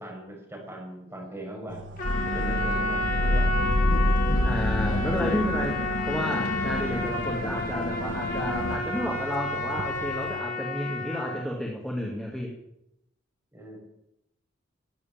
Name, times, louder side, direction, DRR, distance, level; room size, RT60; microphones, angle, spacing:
voice 1, 0.0-1.8 2.3-3.5 3.9-5.1 13.5-13.8, right 1 dB, 10° right, -1 dB, 6.5 m, -39 dB
sound 1, 1.7-10.4, equal, 65° right, 1.3 m, -42 dB
sound 2, 2.0-8.8, left 1 dB, 85° left, 1.0 m, -27 dB
Trumpet, 2.0-11.5, left 2 dB, 45° left, 3.1 m, -31 dB
voice 2, 4.4-12.5, equal, 5° left, -1 dB, 2.3 m, -31 dB
19.0 x 8.4 x 9.1 m, 0.83 s
head